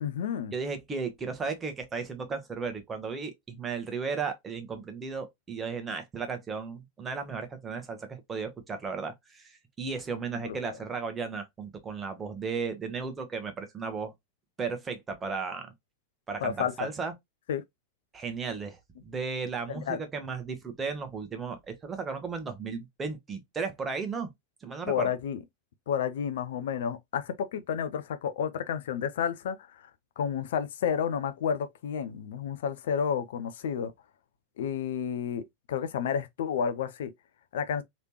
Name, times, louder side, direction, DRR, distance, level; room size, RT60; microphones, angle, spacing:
voice 1, 0.0-0.5 10.4-10.6 16.4-16.9 17.5-17.6 19.8-20.0 24.9-25.4 25.9-29.9 30.2-33.9 34.6-37.1 37.5-37.8, left 7 dB, 60° left, 0.4 m, -31 dB
voice 2, 0.5-14.1 14.6-15.7 16.3-17.1 18.1-24.3 24.6-25.1, right 5 dB, 20° right, 1.0 m, -35 dB
3.2 x 3.0 x 2.9 m
figure-of-eight pair, 90°, 0 cm